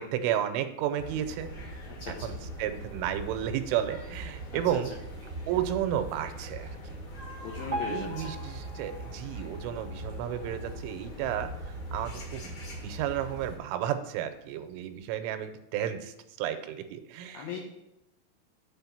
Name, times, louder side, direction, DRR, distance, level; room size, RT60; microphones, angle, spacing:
voice 1, 0.0-1.5 2.2-4.9 5.5-7.0 7.8-12.6 12.8-17.5, right 10 dB, 85° right, 9 dB, 3.1 m, -32 dB
sound 1, 1.0-13.6, right 1 dB, 50° left, 2.6 m, -41 dB
voice 2, 1.9-2.3 4.5-4.8 7.4-8.3 17.3-17.6, left 5 dB, 75° left, -2 dB, 2.3 m, -39 dB
Piano, 7.7-10.8 11.3-11.5 11.8-11.9 12.6-12.7 13.3-13.4, equal, 40° right, 0.9 m, -40 dB
8.1 x 4.4 x 7.1 m, 0.89 s
omnidirectional pair, 5.6 m